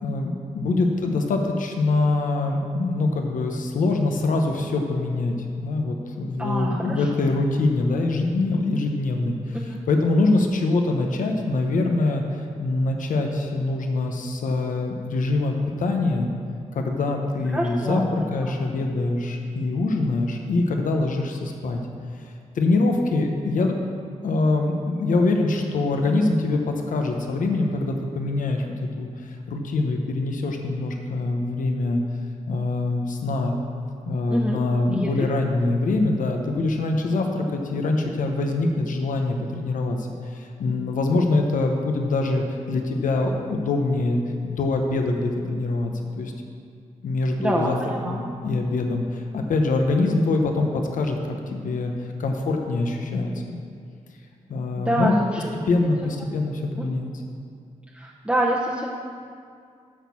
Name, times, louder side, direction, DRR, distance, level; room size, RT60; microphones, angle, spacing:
voice 1, 0.0-9.6 9.9-16.3 16.7-21.8 22.5-23.8 24.2-28.6 29.0-32.0 32.5-33.5 34.1-45.9 46.2-46.3 47.0-47.8 48.0-51.9 52.2-53.6 54.5-55.1 55.7-57.1, left 2 dB, 90° left, 3 dB, 0.9 m, -24 dB
voice 2, 6.4-7.0 9.5-9.8 17.5-18.0 18.4-18.5 34.3-34.6 34.9-35.3 47.4-48.2 54.8-55.5 56.0-56.1 56.8-56.9 57.9-58.9, right 1 dB, 10° right, -4 dB, 0.9 m, -26 dB
9.0 x 6.2 x 7.1 m, 2.3 s
wide cardioid pair, 100°, 13 cm